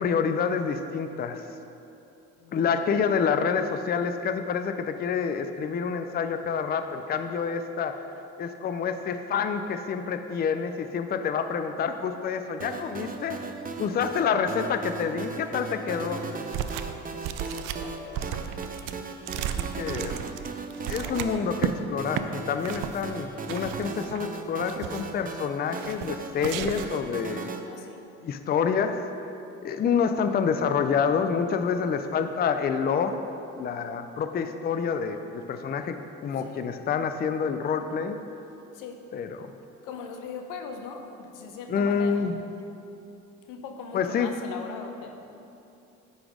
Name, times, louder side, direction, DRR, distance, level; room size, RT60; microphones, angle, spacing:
voice 1, 0.0-1.4 2.5-8.0 8.4-13.4 13.8-16.2 19.4-20.2 20.9-27.5 28.2-29.0 29.6-33.2 33.6-38.2 39.1-39.5 41.7-42.4 43.9-44.3, left 6 dB, 30° left, 8 dB, 0.4 m, -28 dB
voice 2, 2.4-2.8 16.6-18.6 20.9-21.3 22.7-23.3 27.6-28.1 36.3-36.7 38.7-39.1 39.8-42.3 43.4-45.3, left 5 dB, 85° left, 5 dB, 0.8 m, -42 dB
sound 1, 12.6-27.6, right 4 dB, 25° right, 0.6 m, -37 dB
sound 2, 16.5-17.0 17.2-21.7 22.1-22.3 22.6-23.0 23.5-24.2 24.6-25.2 25.7-26.1 26.4-27.0, right 10 dB, 85° right, 0.5 m, -34 dB
9.5 x 4.1 x 5.0 m, 2.8 s
cardioid pair, 90°, 31 cm